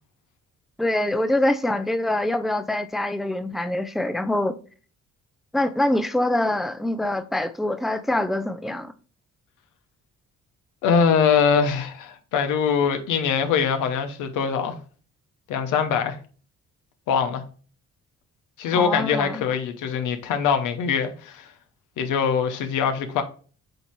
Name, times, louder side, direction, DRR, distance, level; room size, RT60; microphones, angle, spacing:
voice 1, 0.8-4.6 5.5-8.9 18.7-19.4, left 1 dB, ahead, 0.4 m, -24 dB
voice 2, 10.8-14.7 15.5-16.2 17.1-17.4 18.6-21.5 22.0-23.2, left 6 dB, 90° left, 1.0 m, -23 dB
7.9 x 2.9 x 4.4 m
cardioid pair, 90°, 30 cm